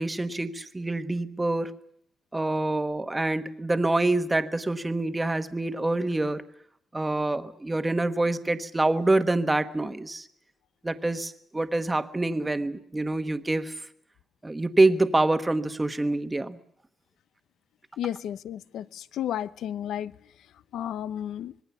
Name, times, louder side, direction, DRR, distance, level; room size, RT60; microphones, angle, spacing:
voice 1, 0.0-1.7 2.3-6.4 6.9-10.3 10.8-13.8 14.4-16.6, right 2 dB, 10° right, 1.2 m, -26 dB
voice 2, 18.0-20.1 20.7-21.5, left 10 dB, 85° left, 0.9 m, -32 dB
25.5 x 21.0 x 7.0 m
wide cardioid pair, 165°, 0 cm